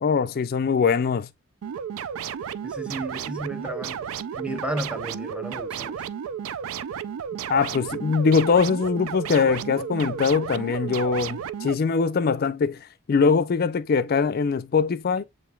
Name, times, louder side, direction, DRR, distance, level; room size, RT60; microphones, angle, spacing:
voice 1, 0.0-1.3 7.5-15.2, left 5 dB, 45° left, 0.4 m, -22 dB
sound 1, 1.6-11.7, right 8 dB, 85° right, 0.3 m, -33 dB
voice 2, 2.6-6.0, right 1 dB, 5° right, 0.7 m, -34 dB
7.6 x 3.1 x 2.2 m
head